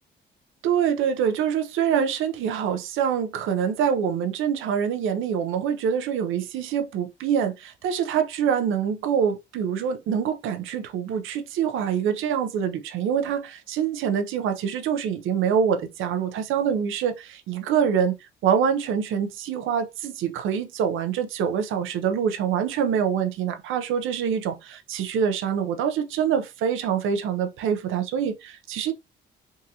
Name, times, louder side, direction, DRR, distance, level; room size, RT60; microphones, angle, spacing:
voice 1, 0.6-28.9, right 8 dB, 85° right, 0.7 m, -25 dB
3.6 x 2.6 x 2.8 m
cardioid pair, 90°, 20 cm